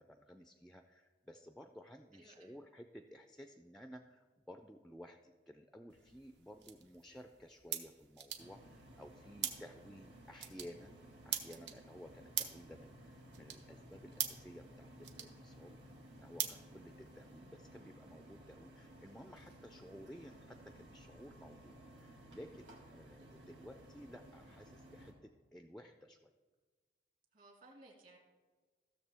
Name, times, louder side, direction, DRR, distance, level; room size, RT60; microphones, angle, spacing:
voice 1, 0.0-26.3, equal, ahead, 6 dB, 0.3 m, -55 dB
voice 2, 2.1-2.6 23.2-23.3 27.3-28.2, right 2 dB, 50° right, 0 dB, 2.1 m, -60 dB
sound 1, 5.9-17.4, right 9 dB, 70° right, 0.9 m, -46 dB
sound 2, 8.4-25.1, right 1 dB, 90° right, 2.0 m, -57 dB
15.5 x 6.7 x 3.4 m, 1.4 s
head